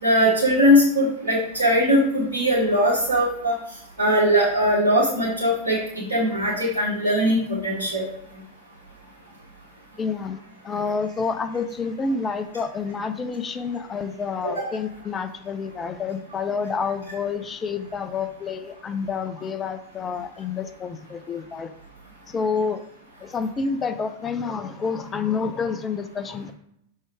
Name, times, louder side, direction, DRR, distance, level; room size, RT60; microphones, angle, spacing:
voice 1, 0.0-3.6 4.0-8.1 14.4-14.5, equal, 75° right, -8 dB, 1.8 m, -20 dB
voice 2, 10.0-10.4 10.6-21.7 22.3-22.8 23.2-26.5, left 5 dB, 20° left, 9 dB, 0.5 m, -28 dB
6.3 x 3.8 x 4.6 m, 0.72 s
figure-of-eight pair, 90°, 0 cm